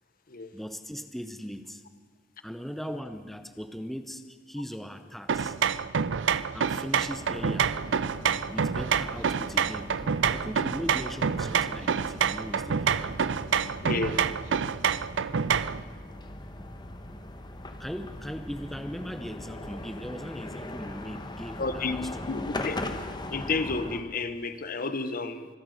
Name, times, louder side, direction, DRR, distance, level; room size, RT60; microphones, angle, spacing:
voice 1, 0.5-1.8 2.4-5.6 6.5-7.7 8.5-9.9 10.3-13.2 17.8-22.5, equal, ahead, 8 dB, 0.7 m, -39 dB
sound 1, 5.3-15.8, right 7 dB, 75° right, 0.5 m, -27 dB
sound 2, 7.2-24.0, left 1 dB, 25° left, 1.1 m, -40 dB
voice 2, 13.8-14.2 21.6-22.8 23.3-25.5, left 3 dB, 50° left, 11 dB, 0.9 m, -31 dB
25.0 x 8.8 x 6.5 m, 1.5 s
head